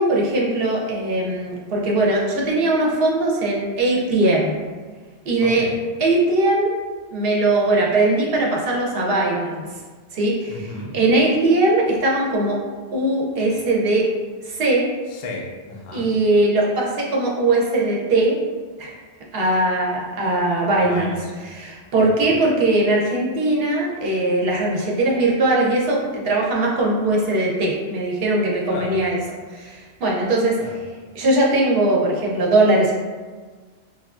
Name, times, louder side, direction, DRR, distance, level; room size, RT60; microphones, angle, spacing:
voice 1, 0.0-4.6 5.3-5.6 6.0-6.7 7.1-9.6 10.1-10.6 10.9-12.6 12.9-14.1 14.4-14.9 15.9-18.4 18.8-19.0 19.3-21.1 21.5-29.2 29.5-30.6 31.2-32.9, right 2 dB, 65° right, -3 dB, 0.9 m, -20 dB
voice 2, 5.4-5.8 10.5-11.0 15.1-16.1 20.8-21.3 22.0-22.4 28.7-29.0 30.6-30.8, left 2 dB, 55° left, -2 dB, 0.5 m, -33 dB
5.7 x 2.3 x 2.4 m, 1.4 s
omnidirectional pair, 1.1 m